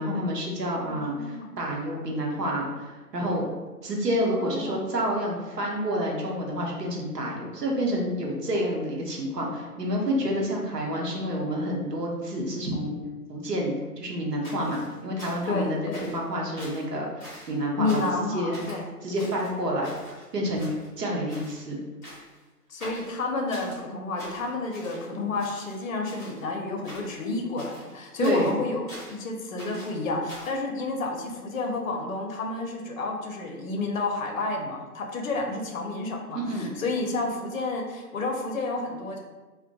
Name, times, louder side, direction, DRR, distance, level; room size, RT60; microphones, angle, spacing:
voice 1, 0.0-3.5 3.8-13.0 13.3-18.0 18.3-18.6 19.0-19.9 20.3-21.8 28.2-28.6 36.3-36.7, equal, 85° right, -1 dB, 0.8 m, -29 dB
voice 2, 0.8-1.5 4.2-4.8 15.5-16.1 17.8-18.9 22.7-39.2, left 3 dB, 55° left, 2 dB, 0.5 m, -30 dB
sound 1, 14.4-15.6 15.9-16.3 16.6-16.9 17.2-17.6 17.9-18.2 18.5-18.8 19.2-20.2 20.5-21.0 21.3-21.6 22.0-22.4 22.8-23.8 24.2-25.1 25.4-26.4 26.8-27.3 27.6-29.2 29.6-30.6, equal, 5° left, 0.6 m, -44 dB
2.6 x 2.1 x 2.2 m, 1.2 s
figure-of-eight pair, 140°, 47 cm